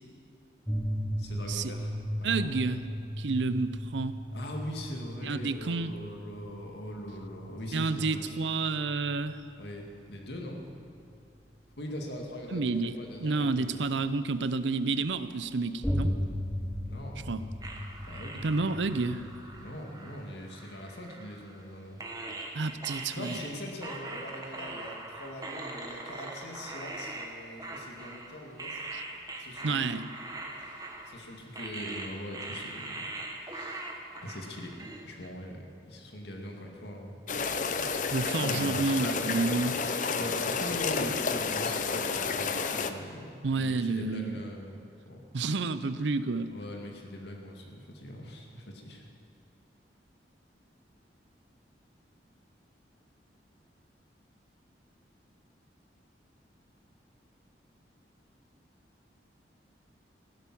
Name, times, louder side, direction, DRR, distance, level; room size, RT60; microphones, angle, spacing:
sound 1, 0.7-10.0 10.9-11.0 15.8-19.7, equal, 5° left, 0.7 m, -36 dB
voice 1, 1.2-2.6 4.3-8.4 9.6-10.6 11.8-13.8 16.9-17.2 18.0-18.5 19.6-22.0 23.1-28.8 29.4-33.0 33.4-33.9 34.2-34.8 35.0-37.2 38.3-39.0 40.1-45.2 46.5-49.0, left 1 dB, 70° left, 1 dB, 2.0 m, -42 dB
voice 2, 2.2-2.8 3.2-4.2 5.2-5.9 7.7-9.4 12.5-16.1 17.3-17.4 18.4-19.2 22.5-23.4 28.9-29.0 29.6-30.1 38.1-39.8 43.4-44.4 45.3-46.5, right 3 dB, 85° right, 13 dB, 0.6 m, -30 dB
sound 2, 17.6-21.6 22.0-35.3, right 2 dB, 20° right, 1.3 m, -42 dB
sound 3, 37.3-42.9, left 5 dB, 45° left, 0.6 m, -30 dB
15.5 x 11.5 x 6.1 m, 2.5 s
head